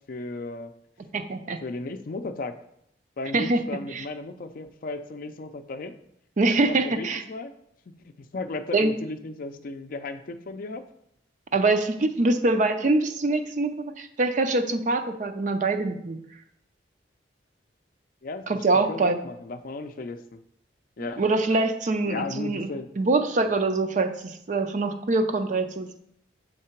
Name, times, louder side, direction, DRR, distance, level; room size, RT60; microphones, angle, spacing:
voice 1, 0.1-0.7 1.6-2.5 3.2-5.9 6.6-7.5 8.0-10.8 18.2-20.4 21.0-21.2 22.1-22.9, left 3 dB, 50° left, 8 dB, 0.4 m, -35 dB
voice 2, 1.1-1.6 3.3-3.6 3.9-4.0 6.4-7.2 8.7-8.9 11.5-16.2 18.5-19.2 21.0-22.7 23.0-26.0, right 3 dB, 45° right, 8 dB, 0.5 m, -24 dB
6.5 x 3.7 x 4.4 m, 0.73 s
head